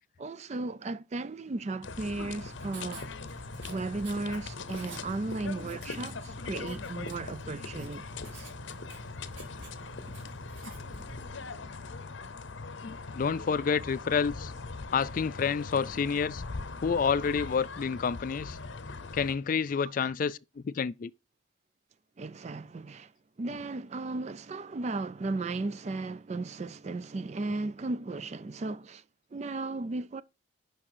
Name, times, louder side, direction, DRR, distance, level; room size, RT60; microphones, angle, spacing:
voice 1, 0.2-3.1 3.7-8.5 20.0-20.1 22.2-23.1 23.4-29.0 29.3-30.2, right 3 dB, 35° right, 0.4 m, -35 dB
sound 1, 1.8-19.4, left 4 dB, 70° left, 0.7 m, -41 dB
Writing, 2.3-11.3, right 2 dB, 70° right, 2.6 m, -48 dB
voice 2, 12.8-14.5 14.9-16.4 16.8-18.6 19.1-21.1, left 6 dB, 45° left, 0.3 m, -29 dB
6.1 x 5.6 x 6.1 m
head